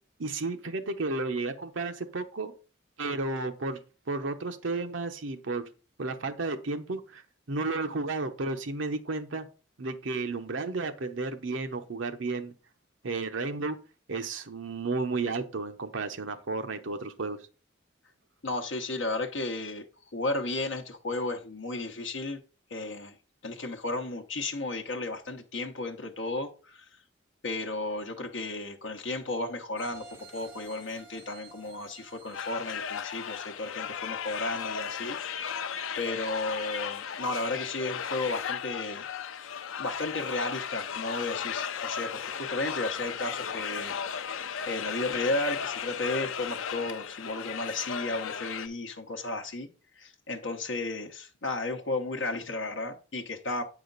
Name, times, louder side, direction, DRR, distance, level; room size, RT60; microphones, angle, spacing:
voice 1, 0.2-2.5 3.0-3.8 4.1-5.6 6.0-7.2 7.5-9.5 9.8-12.5 13.0-13.8 14.1-17.4, right 3 dB, 75° right, 7 dB, 0.8 m, -32 dB
voice 2, 18.4-19.8 20.1-22.4 22.7-23.2 23.4-26.9 27.4-30.1 30.3-35.6 35.9-39.1 39.8-44.0 44.6-49.7 50.0-53.6, left 2 dB, 70° left, 2 dB, 0.9 m, -33 dB
sound 1, 29.8-34.5 34.9-35.0, right 3 dB, 10° right, 1.0 m, -52 dB
sound 2, 32.3-48.7, left 7 dB, 85° left, 0.5 m, -35 dB
7.9 x 4.9 x 3.9 m, 0.34 s
head